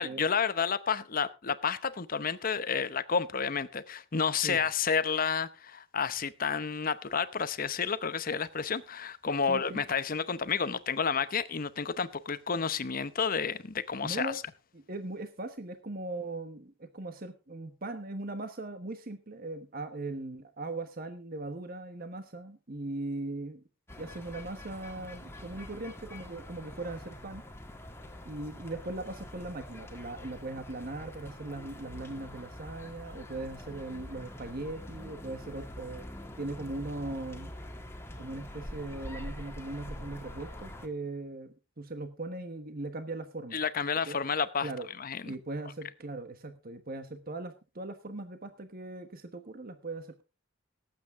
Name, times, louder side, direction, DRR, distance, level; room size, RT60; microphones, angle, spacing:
voice 1, 0.0-14.3 43.5-44.7 45.0-45.3, left 6 dB, 45° left, 0.8 m, -30 dB
voice 2, 9.5-9.8 14.0-14.4 14.7-23.6 24.0-27.4 28.2-36.0 36.4-37.5 38.2-43.6 44.1-44.2 44.6-44.9 45.3-50.2, right 2 dB, 45° right, 1.2 m, -39 dB
sound 1, 23.9-40.9, left 1 dB, 10° left, 1.7 m, -45 dB
18.0 x 8.6 x 3.6 m
head